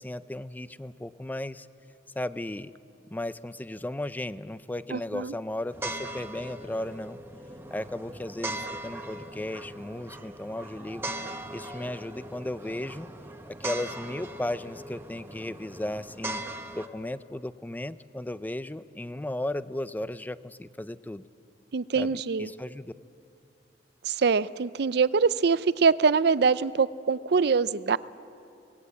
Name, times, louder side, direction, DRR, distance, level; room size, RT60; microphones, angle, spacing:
voice 1, 0.0-1.7 2.2-2.7 3.1-7.2 7.7-13.1 13.5-16.4 16.7-21.2 22.0-22.9, left 1 dB, 10° left, 14 dB, 0.4 m, -35 dB
voice 2, 4.9-5.3 21.7-22.5 24.0-28.0, right 5 dB, 65° right, 16 dB, 0.5 m, -24 dB
sound 1, 5.7-16.9, right 1 dB, 15° right, 1.0 m, -39 dB
24.5 x 18.5 x 8.4 m, 2.6 s
head